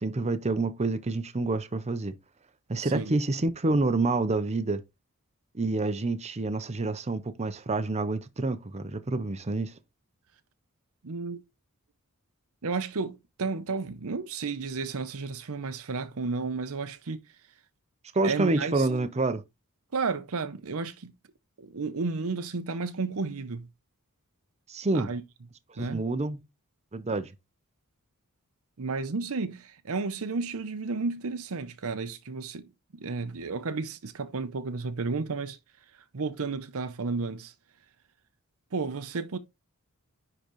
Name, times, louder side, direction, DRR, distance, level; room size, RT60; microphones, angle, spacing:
voice 1, 0.0-2.1 2.7-4.8 5.5-9.7 18.1-19.4 24.7-25.1 25.7-26.4 26.9-27.3, right 2 dB, 30° right, 0.7 m, -28 dB
voice 2, 2.8-3.1 11.0-11.4 12.6-17.2 18.2-18.9 19.9-21.1 21.6-23.7 24.9-25.2 25.8-26.0 28.8-35.6 35.9-37.5 38.7-39.4, right 4 dB, 70° right, 0.7 m, -32 dB
10.0 x 3.9 x 3.1 m
head